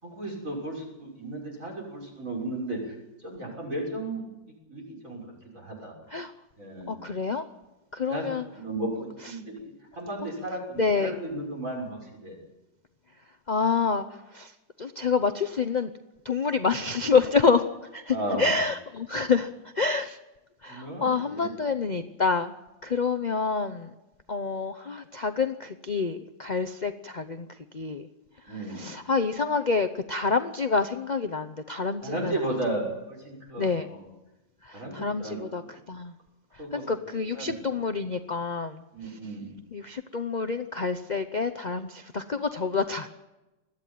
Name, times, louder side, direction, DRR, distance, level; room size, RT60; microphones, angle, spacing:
voice 1, 0.0-2.9 3.2-4.2 4.7-5.2 5.5-5.9 6.6-7.0 8.1-12.4 18.1-18.5 19.1-19.3 20.7-21.6 23.2-23.3 28.5-28.9 32.0-34.0 34.7-35.8 36.6-37.7 38.9-39.7, right 1 dB, 45° right, -1 dB, 6.7 m, -35 dB
voice 2, 6.9-7.4 7.9-8.4 10.8-11.2 13.5-14.0 14.3-14.5 14.8-15.9 16.2-17.7 17.9-19.5 19.8-20.2 20.6-22.5 22.8-23.9 24.3-27.5 27.7-28.0 28.7-32.3 33.6-33.9 34.9-35.6 35.9-36.1 36.7-38.7 39.7-43.1, left 4 dB, 60° left, 8 dB, 0.4 m, -27 dB
21.5 x 14.5 x 9.2 m, 1.0 s
omnidirectional pair, 2.0 m